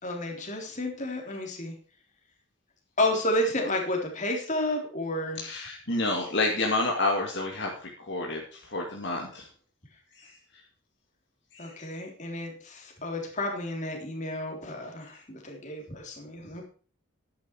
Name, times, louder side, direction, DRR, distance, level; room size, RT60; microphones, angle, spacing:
voice 1, 0.0-1.7 3.0-5.4 11.6-16.6, left 1 dB, 35° left, 1 dB, 3.6 m, -31 dB
voice 2, 5.4-7.7 8.0-9.5 10.2-10.3 11.5-11.7, left 2 dB, 60° left, 0 dB, 2.4 m, -29 dB
12.0 x 10.5 x 4.6 m, 0.40 s
head